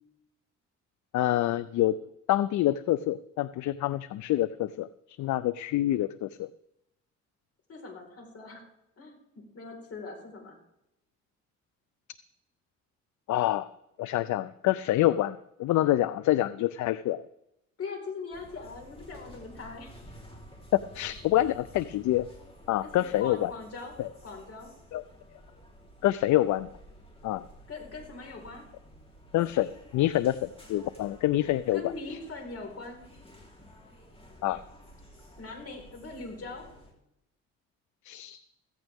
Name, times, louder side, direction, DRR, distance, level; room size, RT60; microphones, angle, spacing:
voice 1, 1.1-2.0 2.3-4.9 5.2-6.5 13.3-13.7 14.0-17.2 20.7-22.3 22.7-23.5 24.0-24.1 24.9-25.0 26.0-26.7 27.2-27.4 29.3-32.2 34.4-34.6 38.0-38.4, left 14 dB, 70° left, 17 dB, 0.5 m, -26 dB
voice 2, 7.7-8.6 9.0-10.6 17.8-19.9 22.8-23.9 24.2-24.7 27.7-28.7 31.7-33.1 35.4-36.6, left 4 dB, 50° left, 2 dB, 4.4 m, -41 dB
sound 1, 18.3-36.9, equal, 20° left, 3.6 m, -52 dB
15.0 x 15.0 x 3.5 m, 0.84 s
cardioid pair, 90°, 30 cm